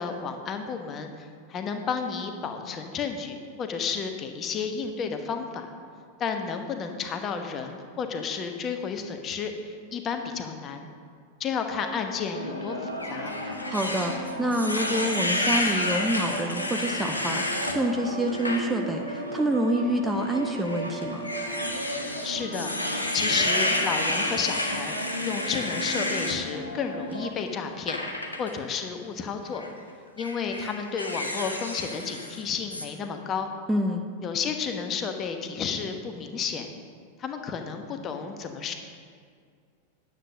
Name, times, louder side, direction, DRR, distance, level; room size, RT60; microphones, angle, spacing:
voice 1, 0.0-5.7 6.2-10.9 11.4-13.3 22.2-28.0 28.4-29.6 30.2-33.5 34.2-36.7 37.2-38.7, left 6 dB, 30° left, 5 dB, 1.1 m, -32 dB
sound 1, 12.3-27.3, equal, 85° right, 1.2 m, -35 dB
sound 2, 13.0-17.8 18.3-18.6 19.1-19.2 20.2-26.4 27.9-28.5 29.5-29.7 30.2-32.4 32.7-32.9, left 1 dB, 85° left, 1.2 m, -30 dB
voice 2, 13.4-21.3 33.7-34.0, right 1 dB, 10° right, 4 dB, 0.7 m, -27 dB
9.9 x 8.2 x 6.2 m, 2.1 s
figure-of-eight pair, 90°, 0 cm